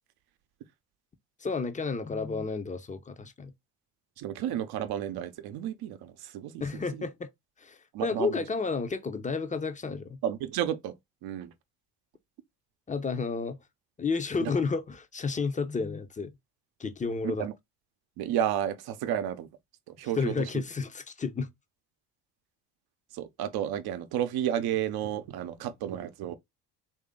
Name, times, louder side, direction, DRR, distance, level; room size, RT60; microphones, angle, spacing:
voice 1, 1.4-3.5 6.6-7.3 7.6-10.2 12.9-13.6 14.0-16.3 16.8-17.4 20.2-21.5, left 4 dB, 20° left, 0.7 m, -31 dB
voice 2, 4.2-6.6 6.9-7.1 7.9-8.4 10.2-10.9 11.2-11.5 14.4-14.5 17.2-17.5 18.2-19.5 19.9-20.6 23.1-26.4, right 10 dB, 60° right, 0.7 m, -32 dB
3.2 x 2.7 x 3.7 m
hypercardioid pair, 60°, 42 cm